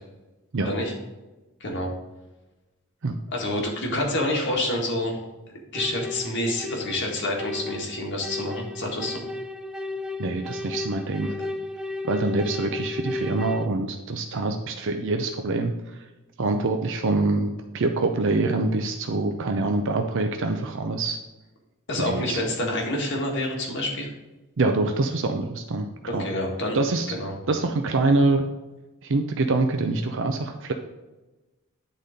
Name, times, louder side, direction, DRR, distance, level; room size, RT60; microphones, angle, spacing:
voice 1, 1.6-1.9 3.3-5.2 5.5-9.2 21.9-24.1 26.1-26.8 27.1-27.3, left 1 dB, 55° left, -1 dB, 1.9 m, -28 dB
sound 1, 5.7-13.7, left 2 dB, 5° right, 0.4 m, -34 dB
voice 2, 10.2-11.3 12.0-15.7 16.4-21.2 22.0-22.4 24.6-25.9 26.1-26.3 26.7-27.1 27.5-28.4 29.0-30.7, right 3 dB, 60° right, 5 dB, 0.6 m, -25 dB
9.9 x 4.1 x 5.1 m, 1.1 s
head